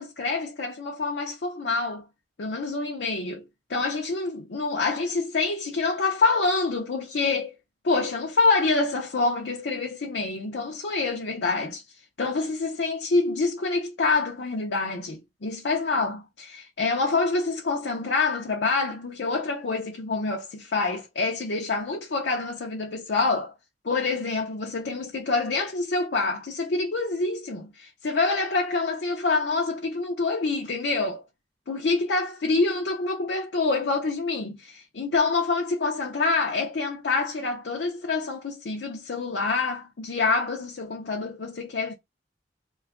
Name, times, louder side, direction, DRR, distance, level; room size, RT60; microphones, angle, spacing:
voice 1, 0.0-2.1 2.4-7.5 7.8-11.8 12.2-23.5 23.8-31.2 31.7-41.9, left 3 dB, 65° left, 0.6 m, -26 dB
2.9 x 2.3 x 3.6 m
head